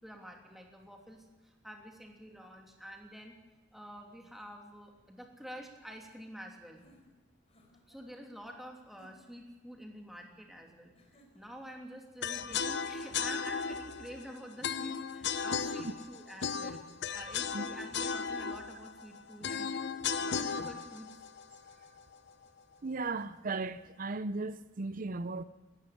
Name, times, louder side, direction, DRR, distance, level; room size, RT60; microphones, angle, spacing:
voice 1, 0.0-3.3 3.7-6.8 7.9-10.9 11.3-16.8 17.1-19.8 20.2-21.1, equal, ahead, 3.0 m, -48 dB
sound 1, 6.7-8.0 8.9-9.5 10.9-11.7 13.2-14.0, equal, 30° left, 4.0 m, -64 dB
sound 2, 12.2-22.3, left 6 dB, 60° left, 0.9 m, -36 dB
voice 2, 22.8-25.4, right 3 dB, 45° right, 0.6 m, -36 dB
19.0 x 14.5 x 9.9 m
head